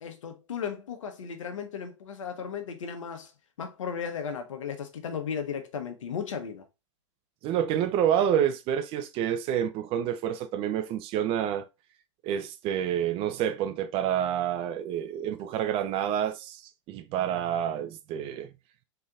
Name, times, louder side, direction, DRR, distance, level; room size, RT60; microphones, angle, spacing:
voice 1, 0.0-3.3 3.6-6.7, left 7 dB, 80° left, 1.1 m, -35 dB
voice 2, 7.4-11.6 12.2-16.6 16.9-18.5, right 10 dB, 35° right, 0.5 m, -28 dB
3.9 x 3.4 x 3.4 m
hypercardioid pair, 120°, 16 cm